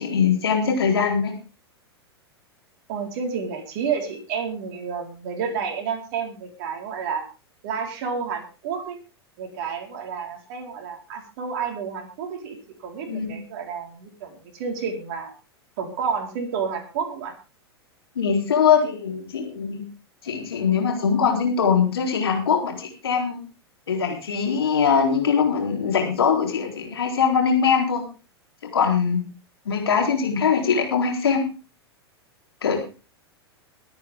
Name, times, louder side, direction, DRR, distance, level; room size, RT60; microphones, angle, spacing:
voice 1, 0.0-1.3 13.1-13.4 18.2-19.8 20.2-23.4 23.9-28.0 28.7-29.2 29.7-31.4 32.6-32.8, left 6 dB, 65° left, 2 dB, 4.1 m, -22 dB
voice 2, 2.9-7.2 7.6-9.0 9.4-12.6 12.8-15.3 15.8-17.3, right 6 dB, 45° right, 2 dB, 4.4 m, -30 dB
22.0 x 9.2 x 3.7 m, 0.34 s
figure-of-eight pair, 95°, 14 cm